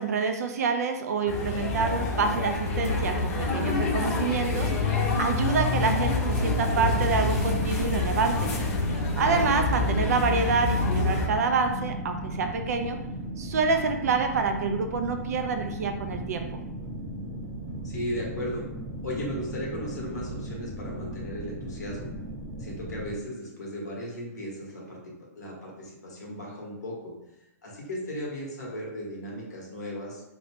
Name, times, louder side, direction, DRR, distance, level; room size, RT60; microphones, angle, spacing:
voice 1, 0.0-8.5 9.2-13.0 13.4-16.5, right 4 dB, 65° right, 6 dB, 0.5 m, -27 dB
sound 1, 1.3-11.3, left 3 dB, 50° left, 0.8 m, -27 dB
sound 2, 6.5-23.1, right 1 dB, 40° right, 1.0 m, -36 dB
voice 2, 17.8-18.6 19.0-22.1 22.6-27.1 27.6-30.2, equal, 85° left, -3 dB, 1.4 m, -36 dB
3.1 x 3.0 x 2.7 m, 0.94 s
hypercardioid pair, 120°, 9 cm